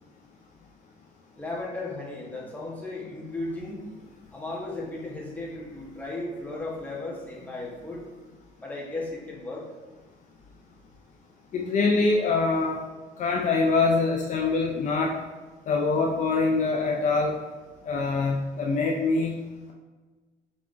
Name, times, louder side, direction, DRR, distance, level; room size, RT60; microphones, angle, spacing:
voice 1, 1.4-3.9 4.3-8.0 8.6-9.7, left 2 dB, 10° left, -4 dB, 1.1 m, -35 dB
voice 2, 11.5-12.8 13.2-15.1 15.7-17.4 17.8-19.3, left 3 dB, 50° left, 0 dB, 0.5 m, -24 dB
5.0 x 3.4 x 2.5 m, 1.3 s
cardioid pair, 110°, 17 cm